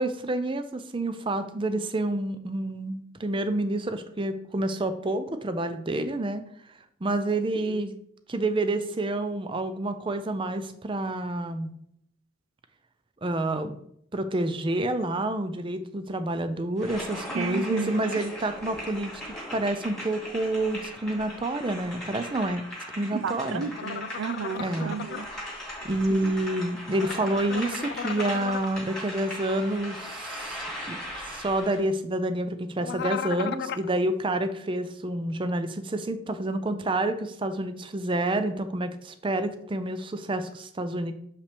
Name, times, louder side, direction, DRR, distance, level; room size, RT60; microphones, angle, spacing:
voice 1, 0.0-6.4 7.0-7.9 8.3-11.7 13.2-13.8 14.1-19.1 19.5-22.6 23.0-23.6 24.6-25.0 25.8-41.1, right 1 dB, 25° right, 10 dB, 0.5 m, -28 dB
sound 1, 16.8-31.8, equal, 5° left, 2.2 m, -39 dB
voice 2, 17.3-18.1 23.1-25.3 26.1-26.3, right 6 dB, 85° right, 12 dB, 0.5 m, -33 dB
sound 2, 23.7-25.2 26.9-28.7 32.8-33.9, left 7 dB, 55° left, 0.3 m, -35 dB
6.7 x 5.5 x 3.4 m, 0.71 s
head